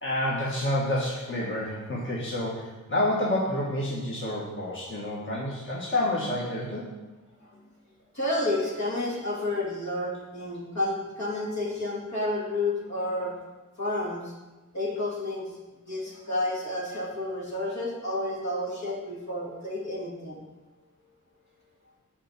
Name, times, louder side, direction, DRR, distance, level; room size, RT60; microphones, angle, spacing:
voice 1, 0.0-6.9, left 1 dB, 40° left, -6 dB, 1.8 m, -29 dB
voice 2, 8.1-13.3 13.8-14.3 14.7-15.5 15.8-20.4, left 1 dB, 60° left, -4 dB, 2.5 m, -30 dB
6.6 x 5.0 x 6.0 m, 1.2 s
wide cardioid pair, 60°, 31 cm